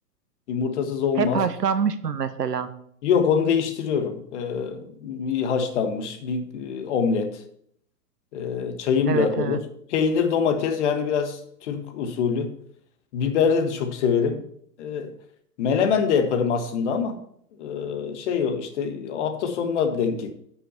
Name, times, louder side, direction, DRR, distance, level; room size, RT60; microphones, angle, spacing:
voice 1, 0.5-1.4 3.0-7.4 8.3-12.5 13.1-14.4 14.8-15.1 15.6-17.2 17.6-20.3, left 6 dB, 50° left, 1.4 m, -24 dB
voice 2, 1.2-2.7 9.1-9.6, right 7 dB, 85° right, 1.0 m, -25 dB
9.9 x 6.0 x 4.4 m
figure-of-eight pair, 115°, 47 cm